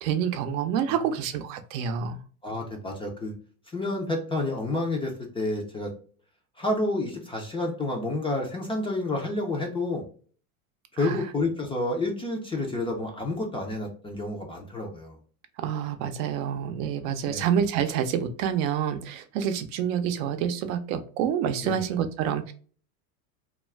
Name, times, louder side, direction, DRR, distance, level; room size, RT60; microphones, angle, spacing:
voice 1, 0.0-2.2 11.0-11.2 15.6-22.5, right 8 dB, 65° right, 0.6 m, -28 dB
voice 2, 2.4-3.3 3.7-5.9 6.6-10.0 10.9-15.2 17.3-17.5 21.6-21.8, left 2 dB, 15° left, 0.4 m, -29 dB
2.4 x 2.3 x 3.2 m
supercardioid pair, 105°, 45 cm